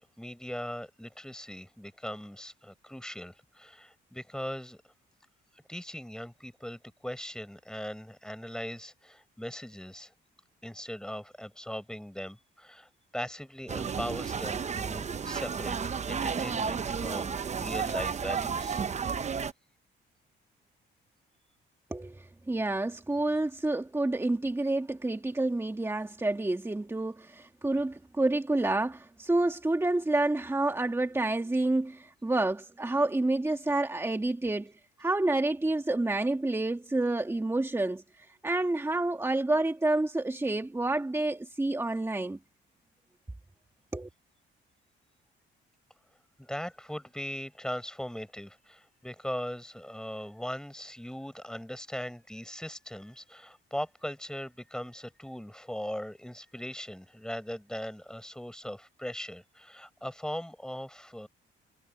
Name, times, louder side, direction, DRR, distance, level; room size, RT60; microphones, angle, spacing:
voice 1, 0.0-4.8 5.7-10.1 10.6-18.8 46.4-61.3, equal, 5° left, 6.4 m, -39 dB
sound 1, 13.7-19.5, right 6 dB, 35° right, 0.9 m, -32 dB
voice 2, 21.9-42.4 43.9-44.1, right 2 dB, 10° right, 2.1 m, -29 dB
cardioid pair, 90°, 20 cm